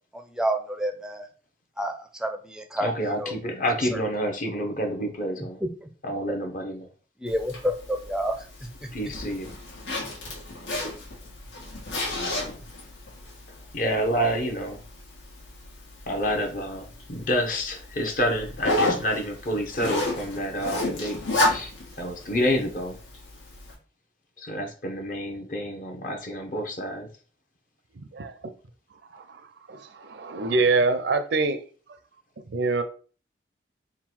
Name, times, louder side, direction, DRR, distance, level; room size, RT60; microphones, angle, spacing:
voice 1, 0.1-1.3 1.8-2.9 3.2-3.4 3.9-4.0 5.6-5.9 6.3-6.4 7.2-8.5 8.8-8.9, equal, 5° right, 0.4 m, -29 dB
voice 2, 2.8-5.6 6.0-6.9 8.9-9.5 12.1-12.6 13.7-14.8 16.1-21.2 21.5-21.7 22.0-23.0 24.4-27.1, equal, 45° left, 0.7 m, -28 dB
Zipper (clothing), 7.3-23.7, left 2 dB, 85° left, 1.3 m, -32 dB
voice 3, 28.0-28.4 29.1-29.4 29.7-31.6 32.5-32.8, right 3 dB, 70° right, 0.5 m, -25 dB
3.7 x 2.3 x 4.4 m
head